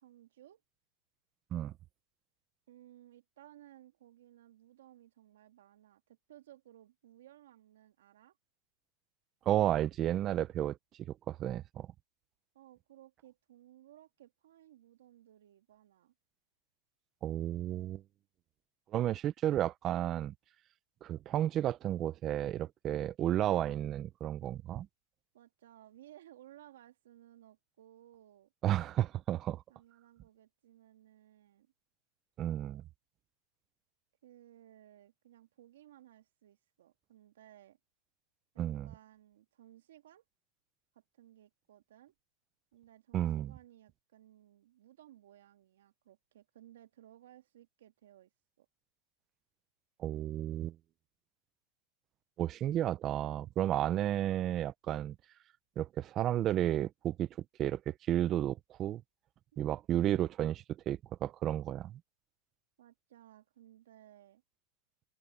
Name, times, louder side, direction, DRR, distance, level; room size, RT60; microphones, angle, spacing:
voice 1, 0.0-0.6 2.7-8.4 12.5-16.1 25.3-28.5 29.7-31.7 34.2-37.8 38.5-40.2 40.9-42.1 42.7-48.3 48.6-48.7 62.8-64.4, right 12 dB, 75° right, 2.8 m, -59 dB
voice 2, 9.5-10.8 11.3-11.9 17.2-18.0 18.9-20.3 21.0-24.9 28.6-29.6 32.4-32.8 38.6-38.9 43.1-43.5 50.0-50.8 52.4-55.2 55.8-57.3 57.6-59.0 59.6-62.0, right 12 dB, 25° right, 0.5 m, -32 dB
supercardioid pair, 165°, 0 cm